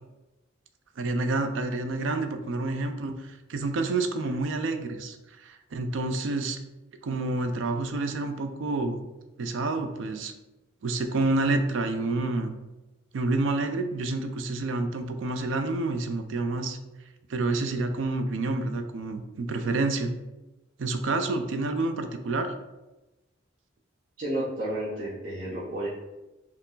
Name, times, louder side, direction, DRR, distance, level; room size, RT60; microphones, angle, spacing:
voice 1, 1.0-6.6 7.0-9.0 9.4-10.3 10.8-12.5 13.1-16.8 17.3-20.1 20.8-22.5, right 2 dB, 70° right, 7 dB, 0.4 m, -28 dB
voice 2, 24.2-25.9, right 1 dB, 45° right, -10 dB, 0.9 m, -31 dB
4.4 x 2.0 x 3.8 m, 1.1 s
head